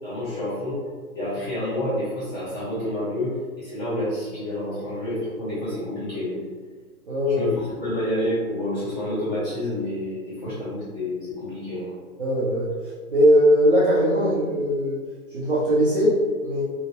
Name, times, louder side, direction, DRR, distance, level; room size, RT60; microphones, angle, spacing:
voice 1, 0.0-0.8 1.1-3.3 3.6-6.4 7.2-11.9, left 1 dB, 20° left, -12 dB, 1.3 m, -29 dB
voice 2, 7.1-7.4 12.2-12.7 13.1-15.0 15.3-16.6, equal, 35° right, -8 dB, 0.6 m, -20 dB
2.8 x 2.7 x 2.8 m, 1.5 s
hypercardioid pair, 165°, 45 cm